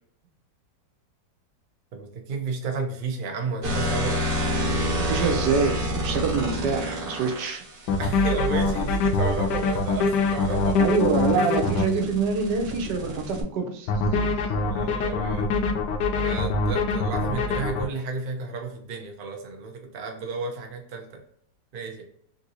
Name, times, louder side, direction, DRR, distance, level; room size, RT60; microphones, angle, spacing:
voice 1, 1.9-4.2 8.0-10.8 11.3-11.5 14.6-15.5 16.2-21.2 21.7-22.0, right 4 dB, 90° right, 2 dB, 0.4 m, -32 dB
sound 1, 3.6-7.5 9.8-13.4, equal, 40° right, 1.1 m, -28 dB
voice 2, 5.0-7.6 10.8-14.5, right 5 dB, 75° right, 3 dB, 1.2 m, -26 dB
sound 2, 7.9-11.9 13.9-17.9, left 3 dB, 75° left, 1.1 m, -24 dB
3.6 x 2.6 x 2.8 m, 0.67 s
omnidirectional pair, 1.9 m